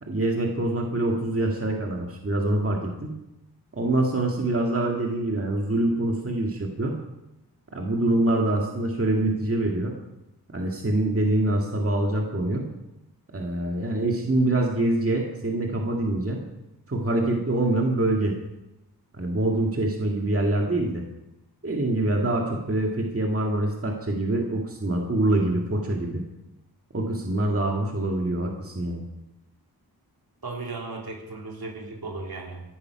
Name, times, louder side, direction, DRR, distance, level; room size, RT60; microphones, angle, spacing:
voice 1, 0.0-3.2 3.7-7.0 7.7-9.9 10.5-12.7 13.3-16.4 16.9-18.4 19.2-21.0 21.6-26.2 26.9-29.0, right 1 dB, 35° right, 0 dB, 2.0 m, -25 dB
voice 2, 30.4-32.6, right 3 dB, 70° right, -1 dB, 3.3 m, -36 dB
15.5 x 11.0 x 5.8 m, 0.95 s
wide cardioid pair, 85°, 38 cm